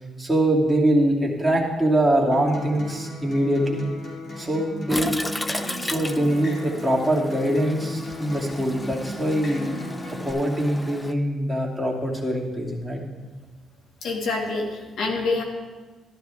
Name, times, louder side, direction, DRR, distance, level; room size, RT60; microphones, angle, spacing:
voice 1, 0.2-3.8 4.4-5.2 5.8-9.6 10.1-13.0, right 1 dB, 5° right, -3 dB, 2.6 m, -23 dB
Acoustic guitar, 2.3-10.3, left 1 dB, 55° left, 3.3 m, -36 dB
Toilet flush, 4.9-11.1, left 1 dB, 15° left, 0.6 m, -34 dB
voice 2, 14.0-15.4, left 3 dB, 75° left, 1 dB, 2.1 m, -26 dB
13.5 x 12.0 x 3.5 m, 1.3 s
cardioid pair, 90°, 0 cm